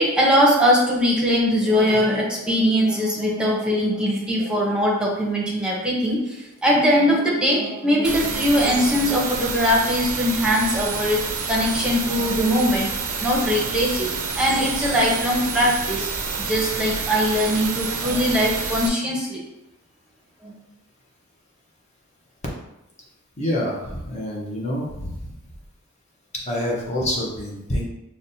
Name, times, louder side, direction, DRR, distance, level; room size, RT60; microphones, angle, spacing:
voice 1, 0.0-6.2 6.6-11.2 11.5-12.9 13.2-16.1 16.4-19.4 20.4-20.5, equal, 5° right, -5 dB, 0.8 m, -21 dB
sound 1, 8.0-18.9, right 5 dB, 85° right, 0.5 m, -28 dB
voice 2, 23.4-25.3 26.3-27.8, left 1 dB, 30° left, -3 dB, 0.7 m, -27 dB
5.8 x 2.2 x 2.6 m, 0.90 s
head